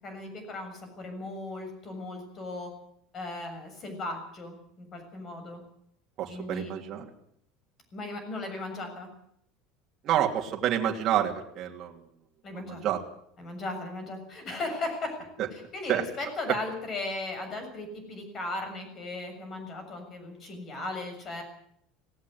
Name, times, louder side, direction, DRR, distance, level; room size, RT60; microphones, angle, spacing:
voice 1, 0.0-2.7 3.1-5.6 6.3-6.8 7.9-9.1 12.4-12.8 13.4-15.2 15.5-21.4, left 2 dB, 25° left, 6 dB, 7.0 m, -37 dB
voice 2, 6.2-7.1 10.0-12.0 12.5-13.0 15.4-15.5 15.9-16.0, right 10 dB, 35° right, 1 dB, 2.9 m, -28 dB
18.0 x 17.5 x 9.5 m, 0.68 s
cardioid pair, 170°, 0 cm